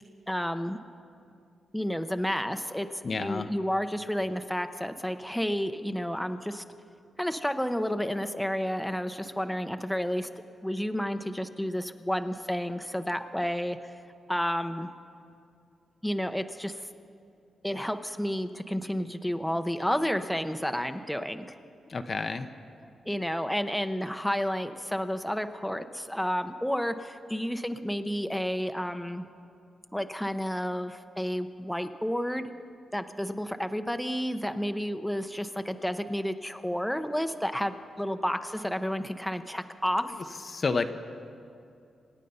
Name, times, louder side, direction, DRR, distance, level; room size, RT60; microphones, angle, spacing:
voice 1, 0.3-0.8 1.7-6.6 7.2-10.3 10.6-13.9 14.3-14.9 16.0-16.8 17.6-21.6 23.1-29.2 29.9-32.5 32.9-40.1, equal, 5° left, 8 dB, 0.8 m, -31 dB
voice 2, 3.0-3.5 21.9-22.5 40.5-40.9, left 4 dB, 45° left, 8 dB, 0.8 m, -29 dB
26.0 x 9.1 x 5.6 m, 2.5 s
cardioid pair, 70°, 0 cm